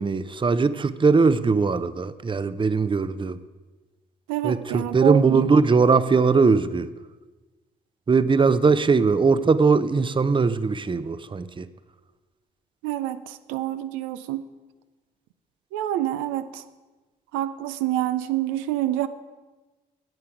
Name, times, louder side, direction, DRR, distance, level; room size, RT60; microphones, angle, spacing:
voice 1, 0.0-3.4 4.4-6.9 8.1-11.7, right 4 dB, 25° right, 14 dB, 0.6 m, -20 dB
voice 2, 4.3-5.4 12.8-14.4 15.7-16.6 17.3-19.1, right 13 dB, 90° right, 11 dB, 0.4 m, -27 dB
10.5 x 8.3 x 5.0 m, 1.2 s
supercardioid pair, 50°, 20 cm